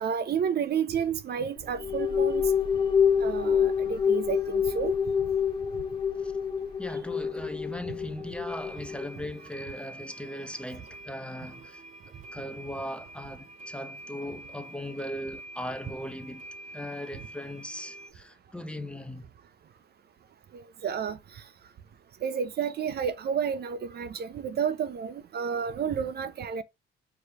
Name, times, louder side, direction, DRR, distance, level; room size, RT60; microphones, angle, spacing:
voice 1, 0.0-2.4 3.2-4.9 20.8-21.2 22.2-26.6, right 7 dB, 55° right, 0.6 m, -30 dB
sound 1, 1.6-9.1, left 7 dB, 25° left, 1.0 m, -27 dB
voice 2, 6.8-11.8 12.3-16.4 16.7-19.3, left 1 dB, 5° left, 0.7 m, -38 dB
sound 2, 8.5-18.1, right 1 dB, 40° right, 1.4 m, -46 dB
4.7 x 3.2 x 3.4 m
cardioid pair, 90°, 20 cm